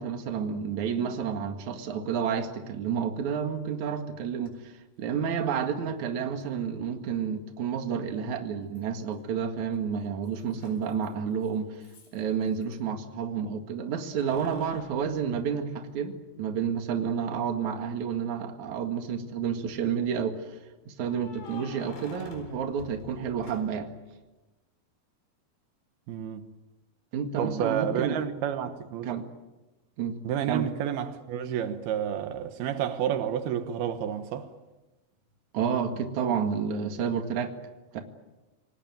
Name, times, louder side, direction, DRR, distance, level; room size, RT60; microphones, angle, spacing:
voice 1, 0.0-4.7 5.0-11.8 12.1-20.5 20.9-23.9 27.1-28.2 29.0-29.3 30.0-30.2 30.5-30.7 35.5-37.6 37.9-38.0, right 7 dB, 55° right, 3.1 m, -30 dB
Keys jangling, 4.4-4.5 6.4-6.5 8.8-9.3 9.6-12.8 14.0-16.2 16.6-16.7 18.5-19.1 21.0-24.0, left 4 dB, 90° left, 6.3 m, -50 dB
voice 2, 26.1-26.4 27.4-29.1 30.2-34.5, right 9 dB, 85° right, 3.2 m, -30 dB
27.5 x 19.0 x 9.3 m
omnidirectional pair, 4.3 m